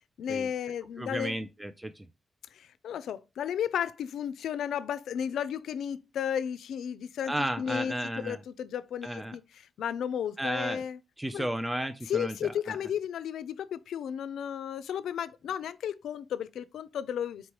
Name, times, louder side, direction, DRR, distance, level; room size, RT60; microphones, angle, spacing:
voice 1, 0.2-1.4 2.5-11.0 11.3-11.5 12.1-17.5, left 9 dB, 85° left, 0.4 m, -34 dB
voice 2, 1.0-2.0 7.3-8.4 9.0-9.3 10.4-10.8 11.2-12.8, right 1 dB, 10° right, 0.3 m, -33 dB
4.4 x 3.1 x 2.9 m
cardioid pair, 120°, 0 cm